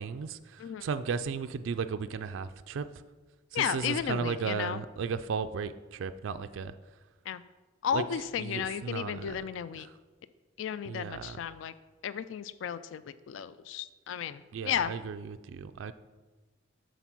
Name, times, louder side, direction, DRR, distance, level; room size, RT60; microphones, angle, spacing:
voice 1, 0.0-2.9 3.5-6.7 7.9-8.0 8.4-9.4 9.9-10.0 10.8-11.4 14.5-15.9, right 5 dB, 75° right, 10 dB, 0.4 m, -35 dB
voice 2, 3.5-4.8 7.3-7.4 7.8-9.9 10.6-11.7 12.0-13.0 13.3-14.9, left 8 dB, 70° left, 15 dB, 0.3 m, -33 dB
8.0 x 4.1 x 6.1 m, 1.3 s
head